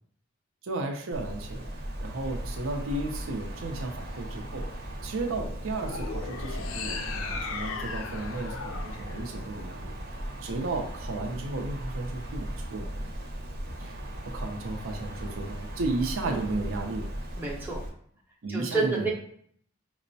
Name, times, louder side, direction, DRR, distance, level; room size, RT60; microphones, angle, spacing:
voice 1, 0.6-1.7 2.0-9.9 10.4-13.0 13.8-14.0 14.3-17.1 18.4-19.1, right 2 dB, 90° right, 2 dB, 0.5 m, -34 dB
Wind, 1.1-17.9, right 1 dB, 55° right, 0.7 m, -37 dB
sound 1, 5.8-10.1, left 5 dB, 75° left, 0.4 m, -38 dB
voice 2, 17.4-17.8 18.5-19.1, right 3 dB, 10° right, -3 dB, 0.6 m, -29 dB
5.2 x 2.0 x 2.7 m, 0.62 s
head